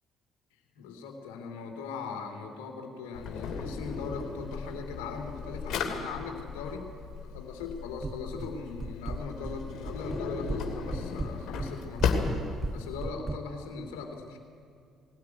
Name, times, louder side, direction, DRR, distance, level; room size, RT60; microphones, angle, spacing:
voice 1, 0.8-6.9 7.2-14.4, left 4 dB, 75° left, 4 dB, 2.6 m, -40 dB
Drawer open or close, 3.1-13.1, left 5 dB, 60° left, 2.8 m, -35 dB
sound 1, 8.0-8.5 8.8-9.6 9.8-10.6 10.9-13.4, right 3 dB, 30° right, 1.2 m, -35 dB
19.5 x 18.0 x 9.5 m, 2.4 s
hypercardioid pair, 50°, 0 cm